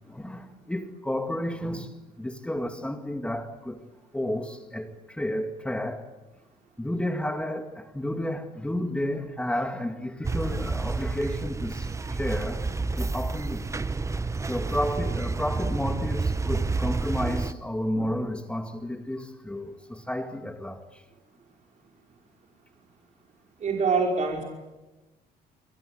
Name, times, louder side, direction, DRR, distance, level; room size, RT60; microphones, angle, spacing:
voice 1, 0.1-3.8 4.1-6.1 6.8-12.6 13.0-13.7 14.5-21.0, left 1 dB, 5° left, 2.0 m, -31 dB
sound 1, 10.2-17.5, right 3 dB, 15° right, 1.0 m, -29 dB
voice 2, 23.6-24.4, right 4 dB, 45° right, 5.5 m, -24 dB
29.5 x 23.0 x 7.9 m
cardioid pair, 110°, 17 cm